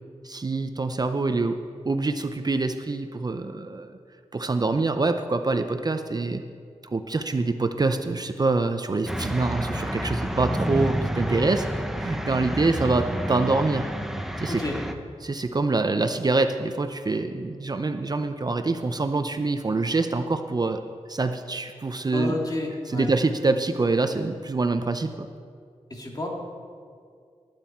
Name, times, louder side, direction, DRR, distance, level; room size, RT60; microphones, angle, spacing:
voice 1, 0.2-1.6 1.8-4.0 4.3-6.4 6.8-11.6 12.0-13.9 14.4-14.6 15.2-20.8 21.1-22.4 22.9-25.3, right 3 dB, 35° right, 7 dB, 0.6 m, -25 dB
sound 1, 9.1-14.9, equal, 5° right, 0.9 m, -30 dB
voice 2, 14.5-14.8 22.1-23.1 25.9-26.3, left 2 dB, 35° left, -1 dB, 2.6 m, -30 dB
19.5 x 9.2 x 4.5 m, 2.2 s
wide cardioid pair, 80°, 12 cm